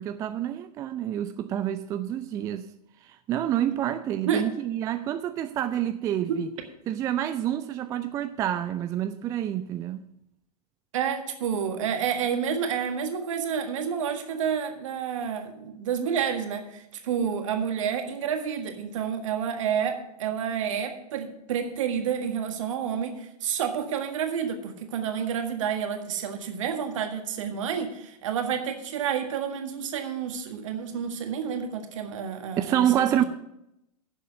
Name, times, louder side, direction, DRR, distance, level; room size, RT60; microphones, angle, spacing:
voice 1, 0.0-2.7 3.0-6.5 6.9-10.0 32.6-33.2, right 11 dB, 15° right, 0.3 m, -28 dB
voice 2, 10.9-33.2, right 7 dB, 55° right, 1.7 m, -29 dB
10.5 x 7.2 x 6.6 m
figure-of-eight pair, 100°, 20 cm